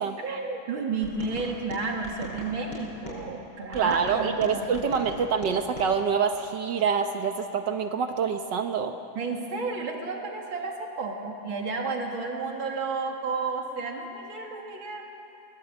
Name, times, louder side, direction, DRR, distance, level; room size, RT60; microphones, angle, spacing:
voice 1, 0.2-4.9 9.1-15.0, right 4 dB, 85° right, 1 dB, 3.2 m, -32 dB
sound 1, 1.0-3.2 3.7-5.9, equal, 20° left, 6.2 m, -41 dB
voice 2, 3.7-8.9, right 6 dB, 65° right, 6 dB, 1.5 m, -26 dB
23.0 x 20.0 x 7.9 m, 2.9 s
omnidirectional pair, 2.1 m